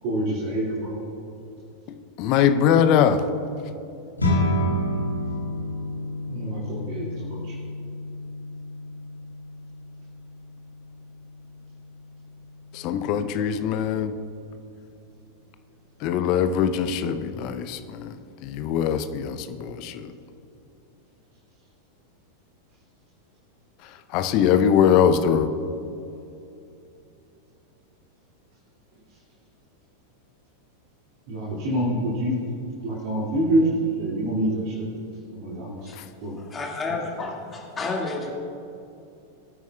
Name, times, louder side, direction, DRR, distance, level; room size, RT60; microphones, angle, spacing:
voice 1, 0.0-1.0 6.3-7.5 31.3-32.4 32.8-33.7 34.0-34.8 35.3-35.9 36.2-36.4, right 1 dB, 45° right, -6 dB, 2.3 m, -26 dB
voice 2, 2.2-3.2 12.7-14.1 16.0-20.1 24.1-25.5 36.0-36.1, left 8 dB, 40° left, 10 dB, 0.7 m, -22 dB
sound 1, 4.2-13.7, left 1 dB, 80° left, 1.8 m, -30 dB
voice 3, 36.4-38.3, left 3 dB, 20° left, -2 dB, 2.1 m, -31 dB
21.0 x 9.0 x 2.4 m, 2.7 s
figure-of-eight pair, 90°, 0 cm